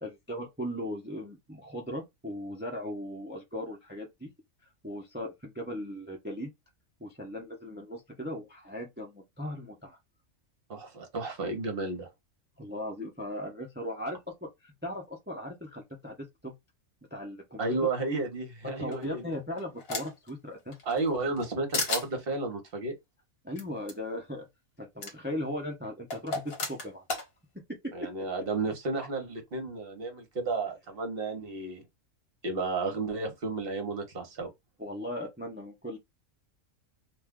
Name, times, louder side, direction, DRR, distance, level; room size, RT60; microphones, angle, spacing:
voice 1, 0.0-4.3 4.8-6.5 7.0-10.0 12.6-16.5 17.1-17.7 18.6-20.8 23.4-24.5 24.8-27.0 27.8-28.1 34.8-36.0, left 1 dB, 15° right, 0.4 m, -38 dB
voice 2, 10.7-12.1 17.6-19.3 20.9-23.0 27.9-31.9 32.4-34.5, right 3 dB, 50° right, 1.0 m, -32 dB
sound 1, 18.9-20.3 20.7-21.5 21.7-22.1 23.6-23.7 23.9-24.0 25.0-25.1 26.1-27.3, left 3 dB, 50° left, 1.2 m, -33 dB
2.5 x 2.3 x 3.5 m
omnidirectional pair, 1.4 m